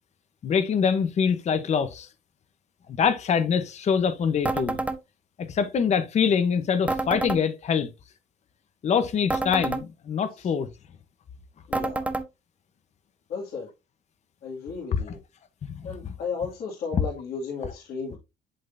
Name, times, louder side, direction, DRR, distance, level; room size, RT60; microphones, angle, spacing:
voice 1, 0.4-2.1 3.0-4.8 5.4-7.9 8.8-10.7 14.9-15.2 15.7-16.1 16.9-17.0, left 6 dB, 40° left, 0.9 m, -24 dB
sound 1, 4.4-5.0 6.9-7.4 9.3-9.8 11.7-12.3, right 2 dB, 10° right, 1.0 m, -28 dB
voice 2, 11.7-12.1 13.3-13.7 14.4-15.2 15.8-18.2, left 5 dB, 65° left, 2.4 m, -34 dB
11.5 x 3.8 x 2.6 m
cardioid pair, 110°, 17 cm